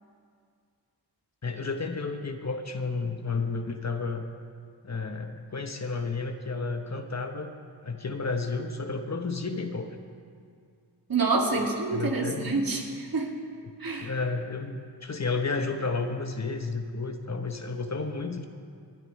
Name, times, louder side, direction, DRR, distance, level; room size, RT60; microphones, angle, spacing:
voice 1, 1.4-4.3 4.8-7.5 7.8-10.0 11.9-12.5 14.0-18.5, left 4 dB, 40° left, 6 dB, 1.0 m, -32 dB
voice 2, 11.1-13.3 13.8-14.1, right 3 dB, 55° right, 0 dB, 2.2 m, -27 dB
27.0 x 9.1 x 3.2 m, 2.2 s
cardioid pair, 50°, 42 cm